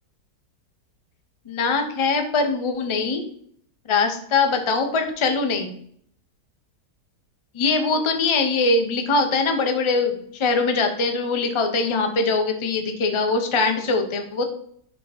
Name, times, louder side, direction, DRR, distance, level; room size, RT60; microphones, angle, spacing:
voice 1, 1.5-3.2 3.8-5.7 7.5-14.5, left 4 dB, 35° left, 5 dB, 0.4 m, -22 dB
5.7 x 3.6 x 5.0 m, 0.64 s
omnidirectional pair, 1.7 m